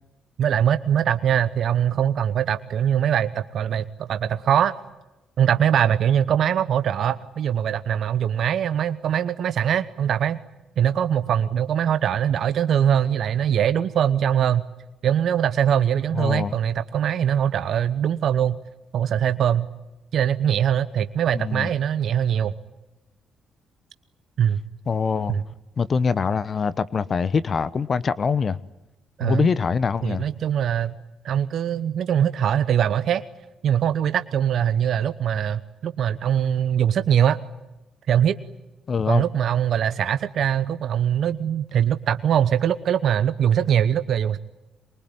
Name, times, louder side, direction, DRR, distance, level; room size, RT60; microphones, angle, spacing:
voice 1, 0.4-4.7 5.4-10.4 10.8-14.6 15.0-18.6 18.9-19.7 20.1-22.5 24.4-24.6 25.3-25.4 29.2-29.5 30.0-30.9 31.2-33.2 33.6-37.4 38.1-38.4 39.1-44.4, right 9 dB, 65° right, 1.0 m, -22 dB
voice 2, 16.2-16.5 21.3-21.7 24.9-25.4 25.8-28.6 29.2-30.3 38.9-39.2, left 5 dB, 45° left, 0.9 m, -24 dB
24.0 x 23.0 x 9.6 m
supercardioid pair, 55°, 0 cm